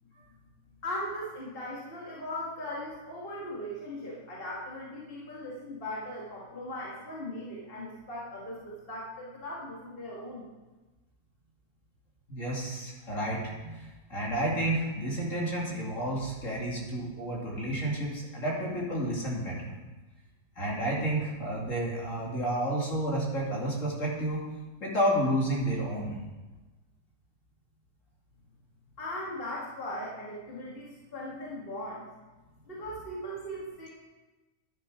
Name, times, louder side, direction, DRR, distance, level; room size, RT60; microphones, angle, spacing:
voice 1, 0.8-10.5 29.0-32.1 32.7-33.9, left 1 dB, 35° left, -5 dB, 2.1 m, -38 dB
voice 2, 12.3-19.7 20.6-24.4 24.8-26.2, right 1 dB, 50° left, -3 dB, 2.9 m, -31 dB
11.0 x 10.0 x 5.0 m, 1.2 s
omnidirectional pair, 1.7 m